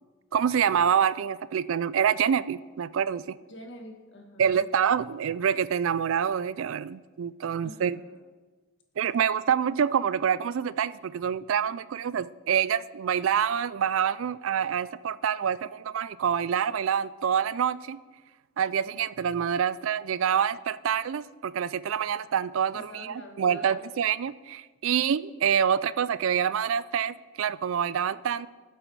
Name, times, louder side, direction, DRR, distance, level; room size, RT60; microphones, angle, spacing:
voice 1, 0.3-3.4 4.4-8.0 9.0-18.0 18.6-28.5, right 8 dB, 65° right, 18 dB, 0.3 m, -26 dB
voice 2, 3.4-4.6 7.6-8.3 22.7-23.9, left 1 dB, 55° left, 4 dB, 1.5 m, -47 dB
13.0 x 7.9 x 4.7 m, 1.3 s
head